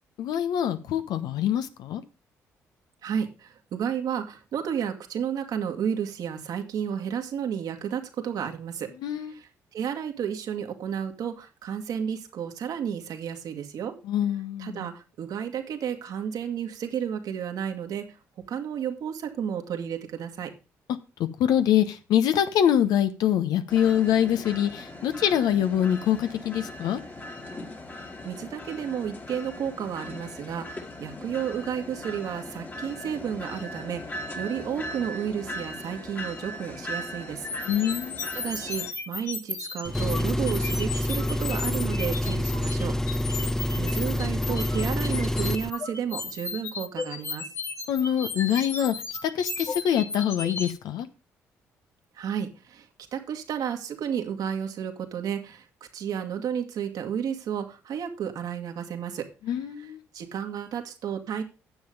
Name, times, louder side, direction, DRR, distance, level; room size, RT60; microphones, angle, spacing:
voice 1, 0.2-2.0 9.0-9.3 14.1-14.8 21.4-27.0 37.7-38.2 47.9-48.9 49.2-51.1 59.5-60.0, left 10 dB, 75° left, 1.0 m, -24 dB
voice 2, 3.0-8.9 9.3-13.9 14.6-18.0 18.5-20.5 28.2-37.5 38.3-42.9 43.8-47.4 52.2-52.9 53.1-55.6 55.9-59.2 59.8-61.4, right 8 dB, 70° right, 1.8 m, -32 dB
sound 1, 23.7-38.9, left 1 dB, 30° left, 1.8 m, -39 dB
sound 2, 37.4-50.7, left 4 dB, 45° left, 2.2 m, -35 dB
Engine, 39.8-45.7, left 1 dB, 5° left, 0.5 m, -27 dB
9.1 x 7.2 x 5.2 m
hypercardioid pair, 55°, 7 cm